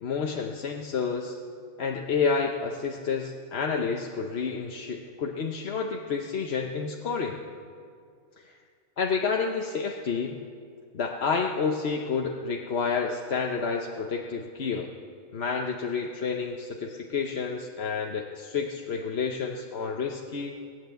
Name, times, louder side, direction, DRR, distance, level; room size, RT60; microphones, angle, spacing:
voice 1, 0.0-1.4 1.8-7.4 9.0-10.4 10.9-14.9 15.3-20.6, left 5 dB, 55° left, 1 dB, 1.0 m, -29 dB
18.5 x 9.5 x 7.9 m, 2.3 s
omnidirectional pair, 1.4 m